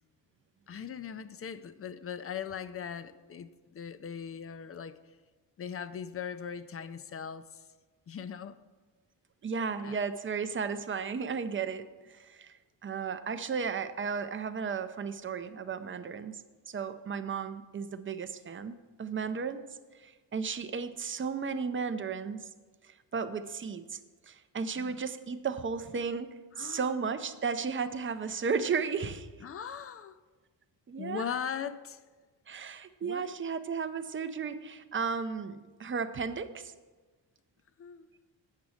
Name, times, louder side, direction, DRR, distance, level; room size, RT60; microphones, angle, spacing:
voice 1, 0.7-5.0 5.6-7.6 8.1-8.5 9.8-10.0 24.8-25.0 26.6-26.9 29.4-30.2 31.0-32.0 33.0-33.3 37.8-38.1, left 7 dB, 30° left, 0.5 m, -39 dB
voice 2, 9.4-12.6 12.8-19.7 20.0-22.5 22.8-29.3 30.9-31.3 32.5-36.7, right 5 dB, 30° right, 0.5 m, -34 dB
8.4 x 6.0 x 6.4 m
cardioid pair, 110°, 44 cm